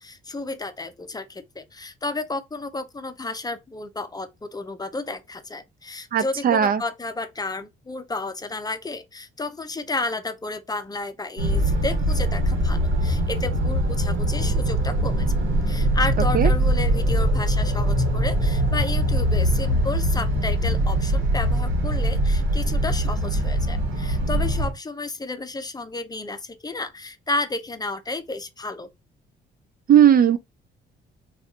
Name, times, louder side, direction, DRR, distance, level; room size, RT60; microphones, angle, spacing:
voice 1, 0.0-15.3 15.7-28.9, left 3 dB, 20° left, 0.5 m, -32 dB
voice 2, 6.1-6.8 16.3-16.5 29.9-30.4, right 9 dB, 50° right, 0.4 m, -16 dB
sound 1, 11.4-24.7, right 1 dB, 85° right, 1.1 m, -22 dB
2.6 x 2.4 x 3.7 m
cardioid pair, 90°, 20 cm